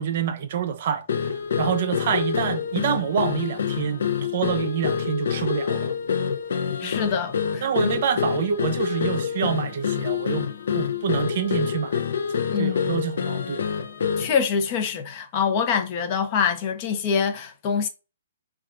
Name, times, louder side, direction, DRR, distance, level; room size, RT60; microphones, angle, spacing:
voice 1, 0.0-4.1 4.3-5.9 6.8-6.9 7.6-12.0 12.6-13.6, right 8 dB, 50° right, 0.5 m, -27 dB
sound 1, 1.1-14.4, left 7 dB, 75° left, 0.6 m, -27 dB
voice 2, 6.8-8.0 12.5-12.8 14.2-17.9, left 6 dB, 35° left, 0.6 m, -25 dB
5.5 x 2.3 x 2.5 m
hypercardioid pair, 155°, 0 cm